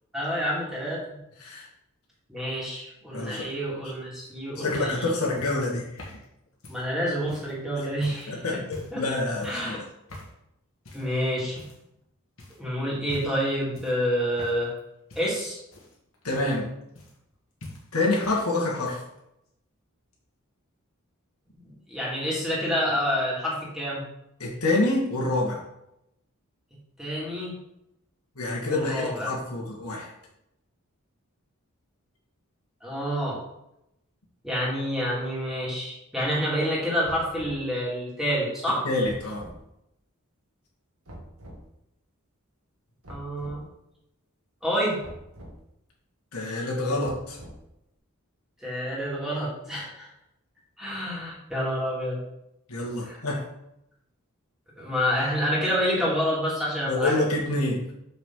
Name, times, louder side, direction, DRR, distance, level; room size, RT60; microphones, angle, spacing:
voice 1, 0.1-1.2 2.3-5.1 6.7-8.4 8.9-9.0 9.4-9.8 10.9-11.6 12.6-14.7 15.2-15.6 21.6-24.0 27.0-27.5 28.7-29.3 32.8-33.4 34.4-38.9 43.1-43.6 44.6-45.0 48.6-50.1 50.8-52.2 53.0-53.2 54.8-57.2, equal, ahead, -6 dB, 2.4 m, -28 dB
voice 2, 3.1-3.5 4.6-6.1 7.8-7.9 8.3-9.8 16.2-16.7 17.9-19.0 24.4-25.6 28.4-30.1 38.8-39.5 46.3-47.4 52.7-53.4 56.9-57.9, left 2 dB, 90° left, -3 dB, 1.9 m, -27 dB
sound 1, 4.1-7.6 8.0-8.3 8.7-9.1 9.4-9.7 10.1-10.4 10.8-11.1 11.5-12.0 12.4-12.6 13.0-13.4 13.7-14.8 15.1-17.3 17.6-18.4 18.7-19.2 20.1-20.2, left 1 dB, 65° left, 1.7 m, -45 dB
sound 2, 37.0-37.7 39.0-39.6 41.1-41.6 43.0-43.6 45.0-45.6 47.0-47.8, right 1 dB, 80° right, 1.9 m, -44 dB
6.5 x 5.9 x 3.9 m, 0.83 s
head